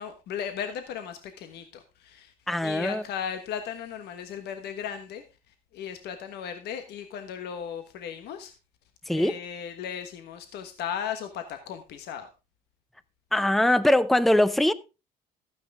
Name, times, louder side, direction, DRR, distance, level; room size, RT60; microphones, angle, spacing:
voice 1, 0.0-2.3 2.6-5.2 5.7-8.5 9.1-12.3, left 8 dB, 75° left, 1.3 m, -36 dB
voice 2, 2.5-3.0 9.1-9.4 13.3-14.7, left 1 dB, ahead, 0.6 m, -22 dB
13.0 x 9.4 x 3.6 m
cardioid pair, 110°, 17 cm